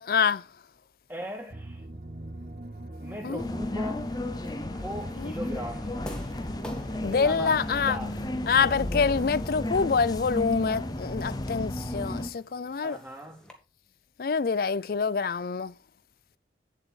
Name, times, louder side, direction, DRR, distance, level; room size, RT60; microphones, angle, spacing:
voice 1, 0.0-0.4 3.2-3.4 5.2-5.3 7.0-8.0 8.5-13.0 14.2-15.7, left 5 dB, 55° left, 0.4 m, -26 dB
voice 2, 1.1-1.8 3.0-4.1 4.8-6.3 7.1-8.2 12.8-13.4, equal, 10° right, 2.0 m, -39 dB
sound 1, 1.5-12.3, right 1 dB, 45° right, 1.2 m, -44 dB
sound 2, 3.4-12.3, left 1 dB, 20° left, 0.7 m, -33 dB
sound 3, 4.4-13.5, equal, 5° left, 1.3 m, -49 dB
9.1 x 7.2 x 4.1 m
head